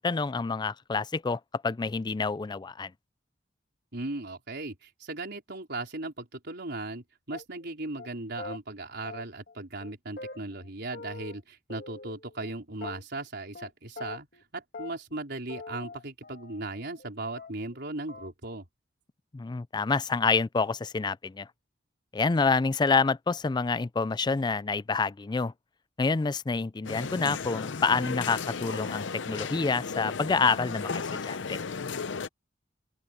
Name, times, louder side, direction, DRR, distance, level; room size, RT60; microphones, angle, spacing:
voice 1, 0.0-2.9 19.3-21.5 22.1-25.5 26.0-31.6, left 4 dB, 25° left, 0.4 m, -27 dB
voice 2, 3.9-18.6, right 2 dB, 60° right, 4.6 m, -37 dB
sound 1, 7.3-7.7 8.0-8.1 8.4-8.6 9.0-9.5 9.8-9.9 10.2-11.4 11.7-12.5 12.8-13.3 13.5-13.7 14.0-14.4 14.7-17.1 17.4-17.8 18.1-18.3, left 3 dB, 55° left, 3.1 m, -43 dB
sound 2, 26.8-32.3, left 5 dB, 75° left, 0.7 m, -35 dB
open air
head